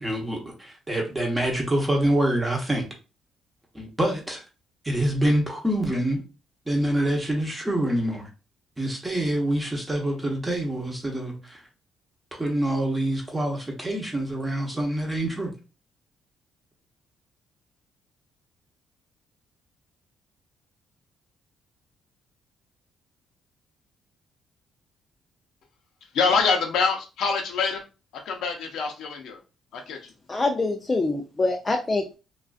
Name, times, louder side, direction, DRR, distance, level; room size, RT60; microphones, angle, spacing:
voice 1, 0.0-2.9 3.7-4.4 4.8-6.2 6.7-8.3 8.8-11.6 12.3-15.5, right 1 dB, 15° right, 0.9 m, -26 dB
voice 2, 26.1-27.8 28.3-29.4 29.7-30.0, left 5 dB, 80° left, 0.6 m, -25 dB
voice 3, 30.3-32.2, left 2 dB, 25° left, 0.4 m, -25 dB
2.4 x 2.3 x 2.3 m
cardioid pair, 90°, 0 cm